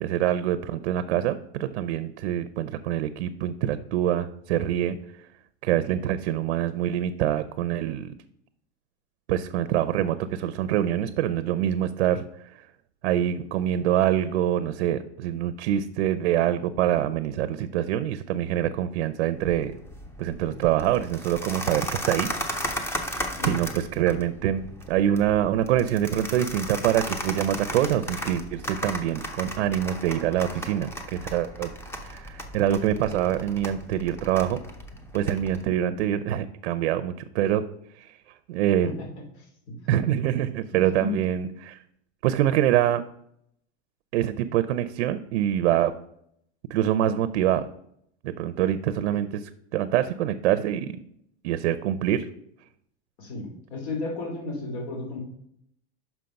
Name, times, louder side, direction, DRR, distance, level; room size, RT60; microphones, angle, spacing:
voice 1, 0.0-5.0 5.6-8.1 9.3-12.2 13.0-19.7 20.2-23.0 23.4-31.7 32.0-34.6 35.1-37.6 37.9-38.1 38.5-38.9 39.9-41.8 42.2-43.0 44.1-45.9 46.7-47.7 48.2-49.4 49.7-50.9 51.4-52.2, right 11 dB, 80° right, 13 dB, 0.6 m, -25 dB
sound 1, 19.3-35.6, equal, 5° left, 0.6 m, -36 dB
voice 2, 39.4-39.7 40.7-41.1 53.2-55.2, left 3 dB, 70° left, 1 dB, 3.0 m, -33 dB
5.9 x 5.3 x 5.7 m, 0.72 s
supercardioid pair, 155°, 34 cm